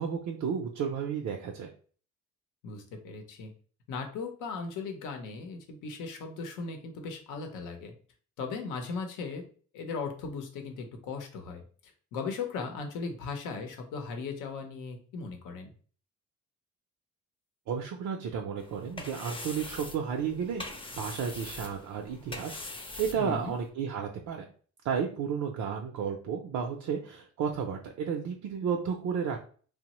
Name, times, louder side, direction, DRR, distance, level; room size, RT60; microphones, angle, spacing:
voice 1, 0.0-1.7 17.7-20.6 20.9-24.4 24.8-29.4, right 7 dB, 70° right, 2 dB, 0.5 m, -32 dB
voice 2, 2.6-3.5 3.9-7.9 8.4-9.4 9.7-15.7 23.2-23.6, left 4 dB, 90° left, 4 dB, 0.7 m, -38 dB
sound 1, 18.6-23.7, left 2 dB, 15° left, 0.5 m, -43 dB
2.9 x 2.0 x 2.9 m, 0.42 s
cardioid pair, 90°, 30 cm